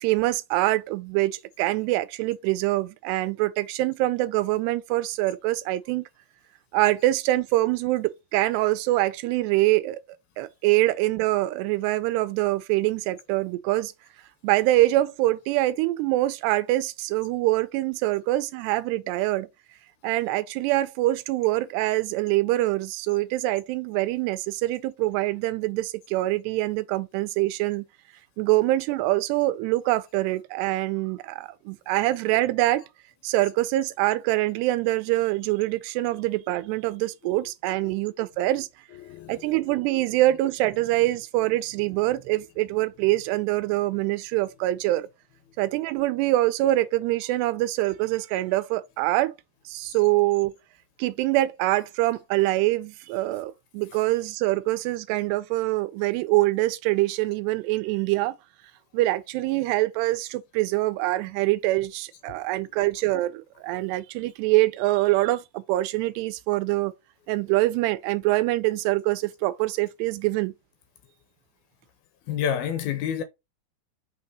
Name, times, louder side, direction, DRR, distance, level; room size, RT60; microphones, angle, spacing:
voice 1, 0.0-6.1 6.7-10.0 10.4-13.9 14.4-19.5 20.0-27.9 28.4-32.8 33.2-38.7 39.3-45.1 45.6-49.4 49.7-50.5 51.0-58.3 58.9-66.9 67.3-70.5, right 17 dB, 85° right, 2.6 m, -24 dB
voice 2, 37.3-37.9 38.5-39.6 41.4-41.5 41.9-42.1 49.9-50.1 53.9-54.0 62.5-62.6 72.3-73.2, left 8 dB, 85° left, 2.3 m, -32 dB
6.4 x 2.8 x 5.3 m
omnidirectional pair, 4.7 m